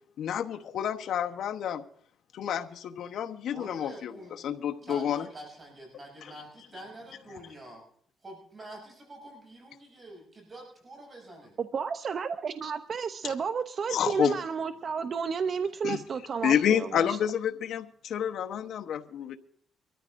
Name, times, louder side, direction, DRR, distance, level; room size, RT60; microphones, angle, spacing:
voice 1, 0.2-1.8 2.3-5.3 6.2-6.3 13.2-13.3 13.9-14.4 15.8-16.0 16.4-19.4, left 9 dB, 70° left, 1.0 m, -29 dB
voice 2, 3.5-4.3 4.8-7.8 8.2-11.6, right 1 dB, 35° right, 6.5 m, -47 dB
voice 3, 11.6-17.2, right 6 dB, 50° right, 0.6 m, -32 dB
24.5 x 13.5 x 2.6 m
cardioid pair, 90°, 0 cm